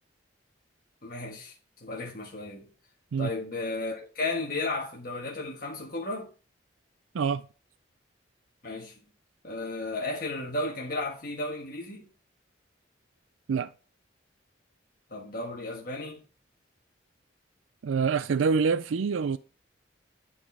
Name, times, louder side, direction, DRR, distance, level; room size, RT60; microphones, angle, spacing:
voice 1, 1.0-1.5 1.8-2.7 3.2-6.3 8.6-8.9 9.4-12.1 15.1-16.2, left 2 dB, 45° left, 1.6 m, -34 dB
voice 2, 17.8-19.4, right 5 dB, 85° right, 0.4 m, -26 dB
11.0 x 4.3 x 4.6 m
head